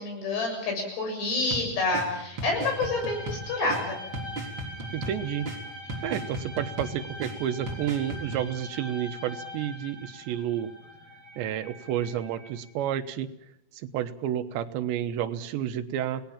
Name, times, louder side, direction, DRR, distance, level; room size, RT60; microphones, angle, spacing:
voice 1, 0.0-4.0, left 3 dB, 75° left, 2 dB, 9.3 m, -28 dB
sound 1, 1.5-8.5, right 2 dB, 30° right, 4.1 m, -37 dB
sound 2, 2.5-12.6, left 1 dB, 55° left, 6.3 m, -43 dB
voice 2, 4.9-5.5 6.0-10.7 11.4-13.3 13.7-16.2, right 10 dB, 90° right, 10 dB, 3.4 m, -30 dB
28.5 x 19.0 x 7.3 m, 0.76 s
omnidirectional pair, 4.9 m